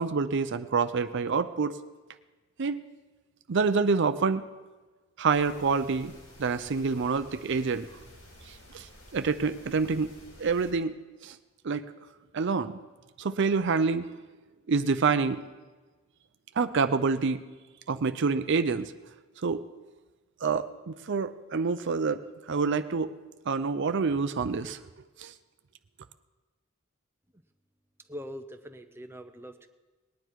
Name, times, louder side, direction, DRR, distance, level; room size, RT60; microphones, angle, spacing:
voice 1, 0.0-1.8 2.6-2.8 3.5-4.4 5.2-6.1 6.4-7.9 8.5-8.9 9.1-10.1 10.4-11.0 11.2-11.4 11.6-11.9 12.3-12.8 13.2-14.1 14.7-15.4 16.6-17.4 17.9-18.9 19.4-19.6 20.4-22.2 22.5-23.1 23.5-24.8 25.2-25.3, right 4 dB, 60° right, 11 dB, 0.5 m, -27 dB
sound 1, 5.3-10.7, equal, 70° left, 4.2 m, -52 dB
voice 2, 28.1-29.7, equal, 10° right, 6 dB, 0.7 m, -42 dB
19.5 x 10.0 x 4.6 m, 1.3 s
head